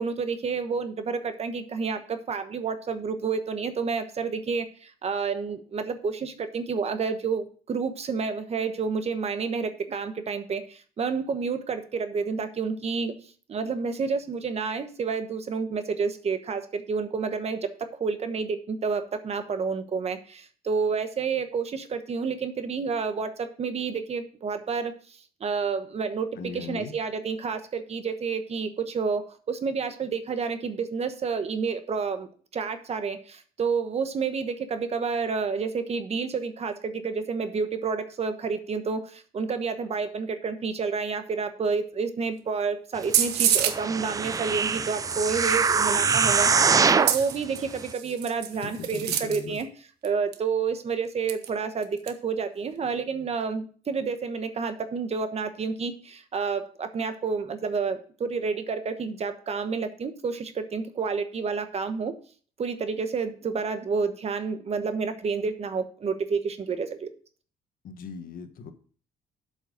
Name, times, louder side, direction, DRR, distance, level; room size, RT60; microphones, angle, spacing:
voice 1, 0.0-13.1 13.5-25.0 25.4-32.3 32.5-49.7 50.0-62.1 62.6-67.1, right 5 dB, 40° right, 9 dB, 1.1 m, -29 dB
voice 2, 26.4-27.0 48.5-49.6 67.8-68.7, left 5 dB, 55° left, 8 dB, 1.3 m, -39 dB
sound 1, 43.0-43.8 45.1-45.8 46.9-49.6 50.0-50.1 50.3-50.4 51.3-51.5 51.8-52.1, right 10 dB, 75° right, 1.1 m, -28 dB
sound 2, 43.7-47.2 47.8-47.9, right 5 dB, 20° right, 0.4 m, -23 dB
7.9 x 5.5 x 6.4 m, 0.42 s
cardioid pair, 110°, 17 cm